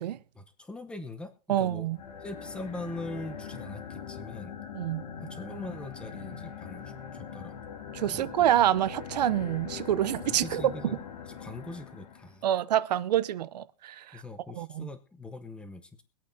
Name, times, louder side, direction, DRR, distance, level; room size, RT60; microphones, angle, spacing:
voice 1, 0.3-1.9 2.2-4.5 5.2-6.8 7.1-7.6 8.0-8.5 10.3-10.9 11.3-12.5 14.1-16.0, left 2 dB, 5° left, 0.8 m, -42 dB
voice 2, 1.5-2.0 4.7-5.0 7.9-11.0 12.4-14.2 14.6-14.9, right 12 dB, 90° right, 0.7 m, -27 dB
sound 1, 1.9-12.4, left 7 dB, 85° left, 1.8 m, -42 dB
23.0 x 8.6 x 2.7 m
supercardioid pair, 155°, 20 cm